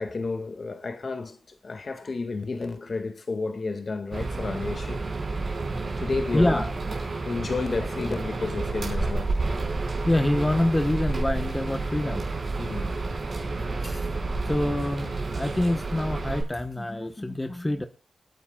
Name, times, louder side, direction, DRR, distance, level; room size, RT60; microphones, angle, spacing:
voice 1, 0.0-5.0 6.0-6.6 7.2-9.4 12.6-13.0, left 3 dB, 45° left, 1.8 m, -31 dB
sound 1, 4.1-16.4, right 3 dB, 45° right, 5.0 m, -30 dB
voice 2, 6.3-6.7 7.0-7.1 10.1-12.3 13.8-14.1 14.4-17.9, left 1 dB, 15° left, 1.0 m, -26 dB
28.0 x 9.5 x 2.3 m
wide cardioid pair, 110°, 0 cm